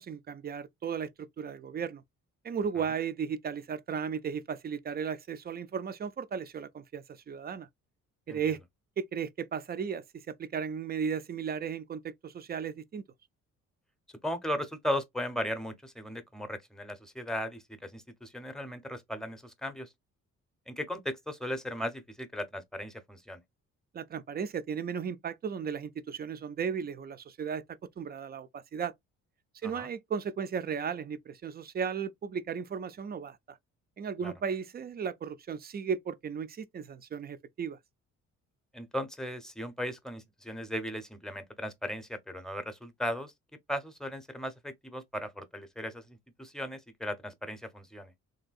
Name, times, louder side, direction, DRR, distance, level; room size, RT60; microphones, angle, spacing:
voice 1, 0.0-2.0 2.4-7.7 8.3-8.6 9.0-13.0 23.9-27.6 28.0-28.9 29.6-33.6 34.0-37.8, right 7 dB, 35° right, 0.4 m, -35 dB
voice 2, 14.2-19.9 20.7-23.4 29.6-29.9 34.2-34.3 38.7-43.3 43.7-48.1, equal, ahead, 0.7 m, -37 dB
3.3 x 2.6 x 2.3 m
cardioid pair, 90°, 30 cm